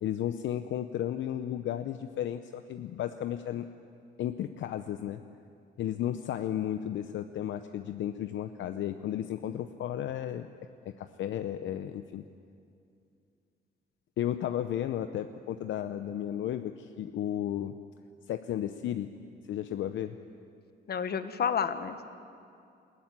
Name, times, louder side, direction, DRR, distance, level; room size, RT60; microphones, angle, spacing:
voice 1, 0.0-3.7 4.2-5.3 5.8-10.5 10.8-12.2 14.2-17.7 18.3-19.1 19.5-20.2, left 11 dB, 70° left, 9 dB, 0.7 m, -34 dB
voice 2, 20.9-22.1, left 7 dB, 55° left, 10 dB, 1.3 m, -30 dB
20.5 x 14.5 x 9.7 m, 2.5 s
cardioid pair, 90°, 20 cm